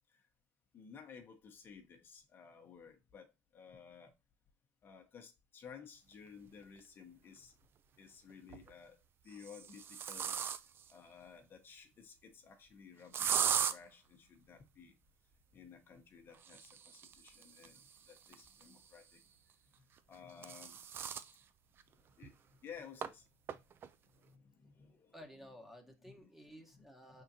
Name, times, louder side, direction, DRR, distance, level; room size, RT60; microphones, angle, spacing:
voice 1, 0.7-4.1 4.8-7.5 8.0-9.0 9.2-10.4 10.9-15.0 15.5-19.2 19.9-20.8 22.2-22.4 22.6-23.3 24.1-25.1 26.0-26.3 26.6-26.8 27.1-27.2, left 6 dB, 40° left, 0.9 m, -55 dB
sound 1, 6.8-6.9 8.3-8.7 9.3-10.9 13.1-13.7 16.3-19.0 20.0-21.3 21.8-21.9 22.2-22.3 23.0-23.1 23.5-23.9, right 8 dB, 40° right, 0.4 m, -38 dB
voice 2, 25.1-27.2, equal, 5° right, 1.1 m, -54 dB
4.8 x 3.7 x 2.8 m
supercardioid pair, 90°, 6 cm